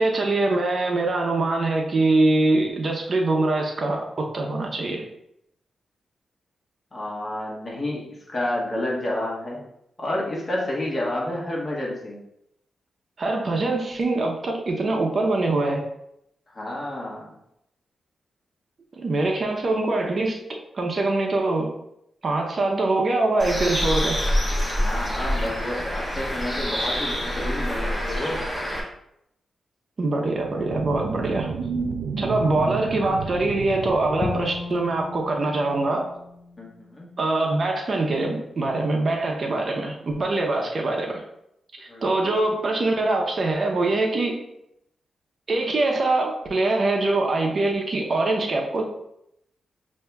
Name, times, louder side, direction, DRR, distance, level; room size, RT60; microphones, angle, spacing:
voice 1, 0.0-5.0 13.2-15.8 18.9-21.7 22.2-24.2 30.0-31.5 32.2-36.1 37.2-41.2 41.8-44.4 45.5-48.9, right 2 dB, 45° right, 1 dB, 0.7 m, -23 dB
voice 2, 6.9-9.6 10.0-12.2 16.5-17.3 24.7-28.5 36.6-37.1 41.9-42.1, left 1 dB, 35° left, -4 dB, 1.4 m, -30 dB
Bird, 23.4-28.8, equal, 5° left, 1.2 m, -26 dB
sound 1, 30.2-35.2, right 5 dB, 75° right, 0.3 m, -32 dB
Bowed string instrument, 34.2-37.3, left 3 dB, 55° left, 0.4 m, -35 dB
6.5 x 2.7 x 2.3 m, 0.79 s
cardioid pair, 90°, 0 cm